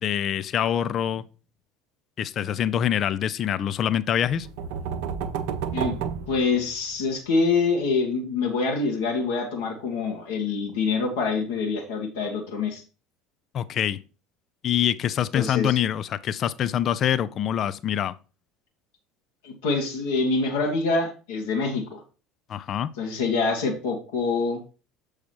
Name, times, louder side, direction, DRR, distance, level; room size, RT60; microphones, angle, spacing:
voice 1, 0.0-1.2 2.2-4.5 13.5-14.0 14.6-18.1 22.5-22.9, left 10 dB, 40° left, 0.4 m, -25 dB
sound 1, 4.2-7.1, right 7 dB, 60° right, 0.7 m, -31 dB
voice 2, 6.3-12.8 15.3-15.8 19.4-22.0 23.0-24.6, left 4 dB, 65° left, 1.4 m, -25 dB
7.1 x 4.8 x 4.4 m
figure-of-eight pair, 65°, 0 cm